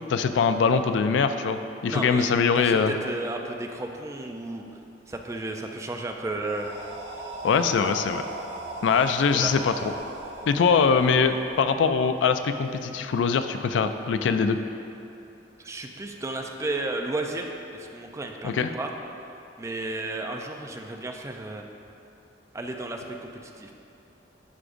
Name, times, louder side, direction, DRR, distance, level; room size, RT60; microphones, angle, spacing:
voice 1, 0.1-2.9 7.4-8.2 8.8-9.9 10.5-14.6 18.4-18.7, left 5 dB, 75° left, 9 dB, 0.3 m, -22 dB
voice 2, 1.8-4.6 5.1-6.7 9.3-9.6 15.6-18.9 19.6-21.6 22.5-23.7, right 2 dB, 15° right, 3 dB, 0.4 m, -33 dB
sound 1, 6.4-12.3, right 2 dB, 85° right, 1.0 m, -39 dB
11.0 x 4.9 x 2.6 m, 2.7 s
head